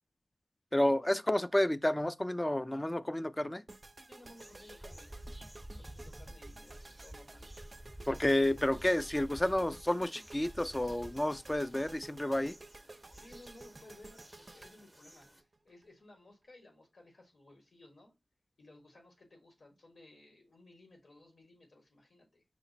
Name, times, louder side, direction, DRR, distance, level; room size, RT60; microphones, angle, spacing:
voice 1, 0.7-3.6 8.1-12.6, left 1 dB, 20° left, 0.4 m, -30 dB
sound 1, 3.7-15.9, right 2 dB, 45° right, 0.5 m, -53 dB
voice 2, 4.1-5.1 5.7-7.5 13.1-18.1 18.6-22.4, left 2 dB, 75° left, 1.5 m, -58 dB
sound 2, 4.2-15.4, right 1 dB, 5° right, 0.7 m, -51 dB
5.8 x 2.0 x 4.0 m
cardioid pair, 45°, 0 cm